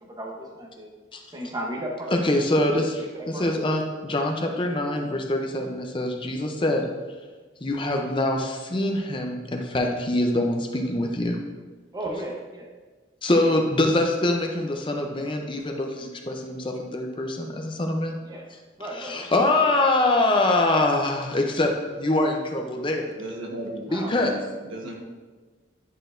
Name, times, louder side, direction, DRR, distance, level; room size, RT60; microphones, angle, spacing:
voice 1, 0.0-0.9 1.3-2.3 3.0-3.5 11.9-12.7 18.2-18.5 18.8-19.2 23.9-24.1, right 1 dB, 20° right, -1 dB, 0.8 m, -35 dB
voice 2, 2.1-6.9 7.6-11.4 13.2-18.2 18.9-23.1 23.9-24.3, left 1 dB, 25° left, 2 dB, 0.5 m, -24 dB
voice 3, 23.2-24.4 24.7-24.9, right 1 dB, 85° right, 0 dB, 1.3 m, -35 dB
10.0 x 4.4 x 2.5 m, 1.3 s
head